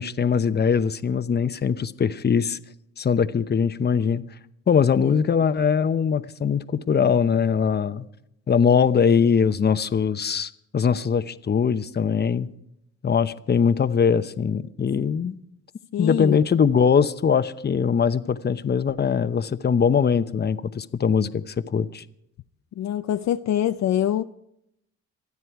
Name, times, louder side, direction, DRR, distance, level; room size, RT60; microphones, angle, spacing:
voice 1, 0.0-2.6 3.0-4.2 4.7-8.0 8.5-12.5 13.0-15.3 16.0-22.0, left 6 dB, 35° left, 12 dB, 0.9 m, -21 dB
voice 2, 15.9-16.4 22.8-24.2, left 11 dB, 60° left, 10 dB, 0.6 m, -24 dB
27.0 x 9.7 x 4.7 m, 0.79 s
cardioid pair, 90°, 30 cm